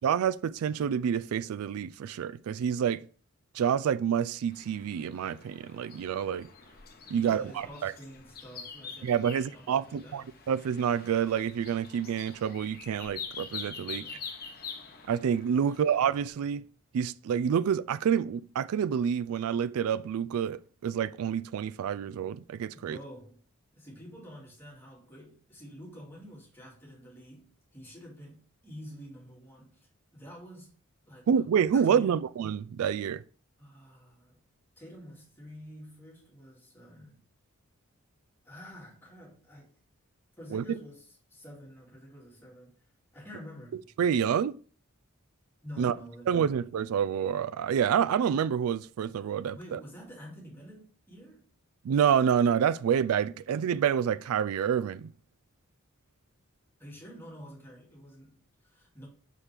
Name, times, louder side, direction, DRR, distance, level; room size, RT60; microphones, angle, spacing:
voice 1, 0.0-3.0 3.5-6.5 7.1-7.9 9.0-14.1 15.1-16.6 16.9-23.0 31.3-33.2 40.5-40.8 44.0-44.6 45.8-45.9 46.3-49.8 51.8-55.1, right 8 dB, 80° right, 0.3 m, -28 dB
sound 1, 4.5-16.3, left 6 dB, 45° left, 1.0 m, -45 dB
voice 2, 7.0-10.3 13.8-14.4 15.6-15.8 22.7-23.4 23.7-30.7 31.1-32.2 33.6-34.4 34.8-37.2 38.4-39.8 40.4-42.8 43.1-43.9 45.6-46.6 49.5-51.5 56.8-59.1, equal, 10° left, 2.4 m, -49 dB
6.2 x 5.7 x 3.4 m
head